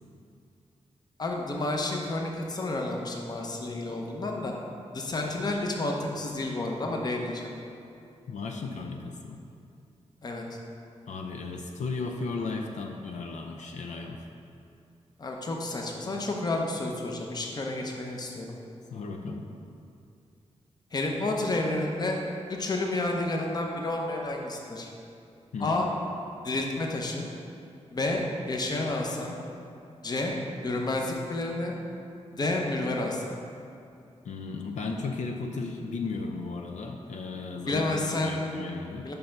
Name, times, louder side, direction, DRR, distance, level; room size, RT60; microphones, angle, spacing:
voice 1, 1.2-4.5 4.9-7.5 10.2-10.4 15.2-18.5 20.9-22.2 22.5-24.9 25.6-25.9 26.4-27.3 27.9-28.2 28.5-29.3 30.0-30.3 30.6-31.7 32.4-33.3 37.7-38.7 39.0-39.1, left 2 dB, 35° left, 1 dB, 0.8 m, -30 dB
voice 2, 8.3-9.4 11.1-14.2 18.9-19.5 25.5-25.8 34.2-39.1, left 4 dB, 80° left, 3 dB, 0.5 m, -35 dB
5.5 x 5.5 x 5.8 m, 2.5 s
wide cardioid pair, 165°, 12 cm